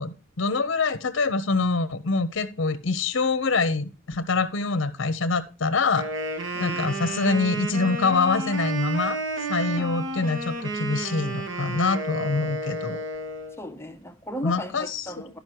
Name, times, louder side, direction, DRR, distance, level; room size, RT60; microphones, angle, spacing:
voice 1, 0.0-6.1 6.6-9.2 9.5-13.0 14.4-15.0, left 3 dB, 60° left, 0.7 m, -25 dB
Wind instrument woodwind instrument, 5.9-13.6, right 2 dB, 60° right, 1.7 m, -31 dB
voice 2, 6.5-6.9 9.7-9.9 13.6-15.4, equal, 10° left, 0.7 m, -37 dB
12.5 x 5.2 x 4.5 m
head